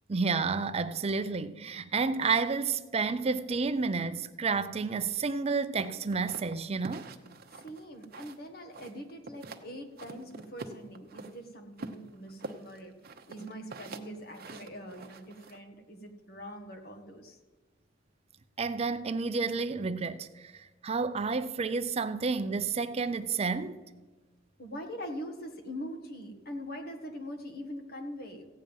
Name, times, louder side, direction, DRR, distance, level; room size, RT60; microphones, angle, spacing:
voice 1, 0.1-7.1 18.6-23.8, right 4 dB, 30° right, 0.5 m, -30 dB
sound 1, 5.8-8.5 8.7-9.7 10.0-11.3 11.8-15.6, right 3 dB, 50° right, 0.9 m, -45 dB
voice 2, 7.5-12.9 13.3-17.4 24.6-28.5, equal, 55° left, 1.6 m, -43 dB
15.5 x 9.0 x 5.4 m
head